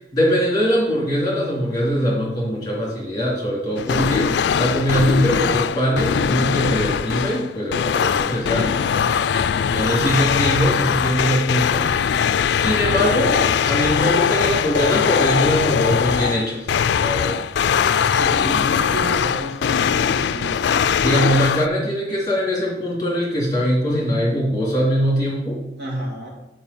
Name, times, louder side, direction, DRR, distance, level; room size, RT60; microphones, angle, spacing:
voice 1, 0.1-4.3 4.6-8.8 9.7-11.8 12.5-16.7 16.9-17.4 21.0-25.6, equal, 20° left, -4 dB, 2.8 m, -22 dB
sound 1, 3.8-21.7, left 7 dB, 75° left, 0.3 m, -21 dB
voice 2, 3.9-4.3 9.9-10.3 18.1-20.8 25.8-26.3, right 1 dB, 65° right, -3 dB, 2.6 m, -30 dB
7.3 x 4.9 x 7.0 m, 0.97 s
head